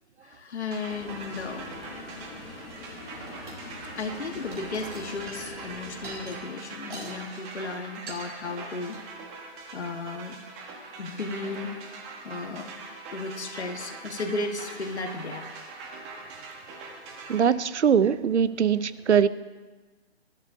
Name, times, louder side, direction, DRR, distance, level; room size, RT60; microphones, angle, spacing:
voice 1, 0.2-1.7 4.0-9.0 9.7-10.4 11.0-11.7 12.2-12.7 13.1-15.4, left 3 dB, 75° left, 5 dB, 1.6 m, -34 dB
sound 1, 0.7-17.5, right 3 dB, 20° right, 1.3 m, -42 dB
sound 2, 0.9-6.3, left 3 dB, 35° left, 2.8 m, -44 dB
sound 3, 3.3-3.6 3.9-4.2 4.5-7.2 7.4-7.7 8.1-8.3 8.8-9.0, right 3 dB, 55° right, 4.8 m, -43 dB
voice 2, 17.3-19.3, right 7 dB, 85° right, 17 dB, 0.7 m, -22 dB
20.0 x 13.0 x 2.8 m, 1.2 s
hypercardioid pair, 145°, 33 cm